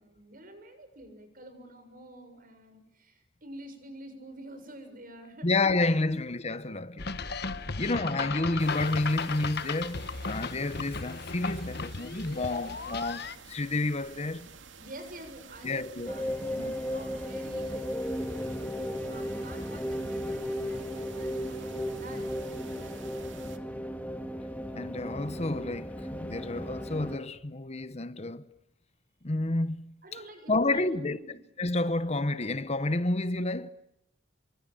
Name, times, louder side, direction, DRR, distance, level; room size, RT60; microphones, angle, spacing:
voice 1, 0.0-5.5 7.6-8.0 14.8-17.9 18.3-18.6 19.1-23.2 30.0-31.4, right 1 dB, 50° right, 6.8 m, -48 dB
voice 2, 5.4-7.1 7.8-14.5 15.6-16.1 16.6-16.8 24.7-28.5 29.2-29.9 30.5-31.2 31.6-33.7, left 2 dB, 35° left, 1.0 m, -30 dB
sound 1, 7.0-13.4, left 4 dB, 60° left, 1.3 m, -36 dB
sound 2, 8.6-23.6, right 5 dB, 80° right, 2.5 m, -51 dB
sound 3, 16.1-27.2, equal, 10° left, 1.9 m, -35 dB
27.5 x 24.0 x 9.0 m
head